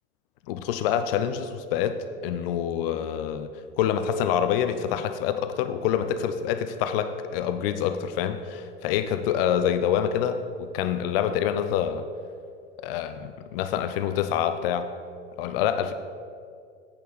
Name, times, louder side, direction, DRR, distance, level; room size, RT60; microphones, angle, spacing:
voice 1, 0.5-3.5 3.8-12.1 12.8-14.9 15.4-15.9, left 9 dB, 50° left, 10 dB, 0.6 m, -26 dB
8.6 x 6.1 x 6.8 m, 2.2 s
figure-of-eight pair, 90°, 37 cm